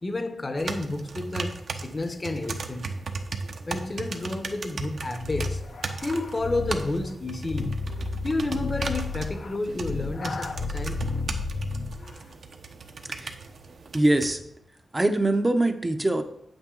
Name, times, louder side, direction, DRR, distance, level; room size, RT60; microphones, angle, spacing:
voice 1, 0.0-3.0 3.7-5.7 6.0-7.8 8.2-11.1, left 2 dB, 25° left, 0.9 m, -31 dB
sound 1, 0.6-14.3, right 4 dB, 60° right, 1.0 m, -37 dB
sound 2, 5.2-12.1, left 4 dB, 65° left, 0.7 m, -33 dB
voice 2, 13.9-14.4 14.9-16.2, right 1 dB, 15° right, 0.7 m, -23 dB
8.9 x 8.8 x 3.8 m
wide cardioid pair, 120°, 0 cm